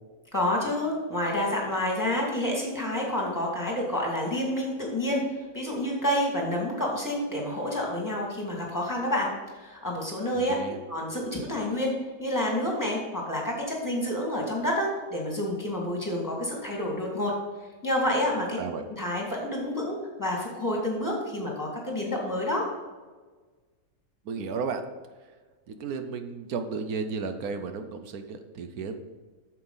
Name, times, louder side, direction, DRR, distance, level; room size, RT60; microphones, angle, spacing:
voice 1, 0.3-5.2 5.5-10.6 10.9-11.9 12.2-17.3 17.8-18.6 19.0-22.6, left 1 dB, 15° left, -2 dB, 2.2 m, -29 dB
voice 2, 10.3-10.8 18.6-18.8 24.2-24.8 25.7-29.0, right 5 dB, 90° right, 7 dB, 1.3 m, -33 dB
8.8 x 7.1 x 3.9 m, 1.4 s
omnidirectional pair, 1.5 m